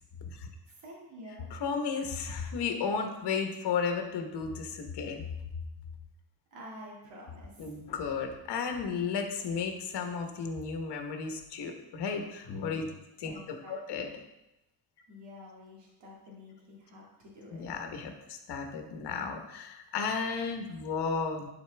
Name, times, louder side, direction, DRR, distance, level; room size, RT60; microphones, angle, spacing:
voice 1, 0.7-1.5 6.5-7.7 13.2-14.2 15.1-17.7, left 1 dB, 85° right, -4 dB, 2.1 m, -49 dB
voice 2, 1.5-5.2 7.6-12.9 13.2-13.4 13.7-14.1 17.5-21.5, left 5 dB, 70° left, 4 dB, 1.2 m, -34 dB
11.5 x 4.5 x 3.4 m, 0.92 s
cardioid pair, 135°, 42 cm